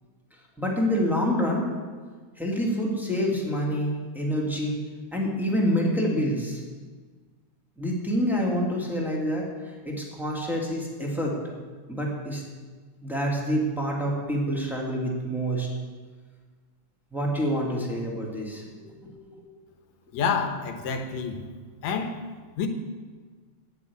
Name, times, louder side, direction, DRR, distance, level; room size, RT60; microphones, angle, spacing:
voice 1, 0.6-1.6 2.4-4.8 5.1-6.6 7.8-9.5 9.8-11.4 11.9-12.4 13.0-15.7 17.1-18.6 18.9-19.4, equal, ahead, -3 dB, 1.5 m, -27 dB
voice 2, 20.1-21.4 21.8-22.2 22.6-22.7, left 6 dB, 75° left, 6 dB, 2.2 m, -28 dB
9.4 x 8.4 x 8.5 m, 1.5 s
omnidirectional pair, 3.4 m